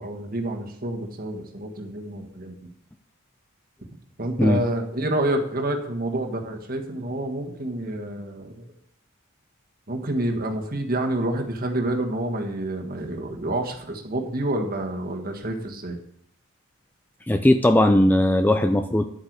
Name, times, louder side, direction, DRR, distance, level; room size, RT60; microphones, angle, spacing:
voice 1, 0.0-2.5 4.2-8.6 9.9-16.0, right 1 dB, 40° right, 3 dB, 1.6 m, -28 dB
voice 2, 17.3-19.0, left 1 dB, 10° left, 7 dB, 0.4 m, -18 dB
11.0 x 8.0 x 4.7 m, 0.71 s
head